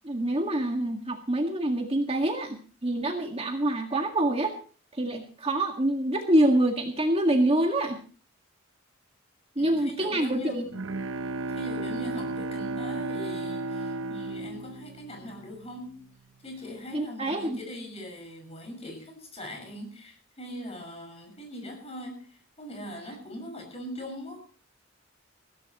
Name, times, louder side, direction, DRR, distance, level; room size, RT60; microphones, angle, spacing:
voice 1, 0.0-4.5 4.9-8.0 9.6-10.6 16.9-17.6, right 1 dB, 30° right, 3 dB, 1.9 m, -26 dB
voice 2, 9.6-10.7 11.5-16.0 16.4-24.5, equal, 30° left, 4 dB, 5.8 m, -41 dB
Bowed string instrument, 10.4-15.9, right 2 dB, 80° right, 0.7 m, -34 dB
21.0 x 16.0 x 3.1 m, 0.38 s
head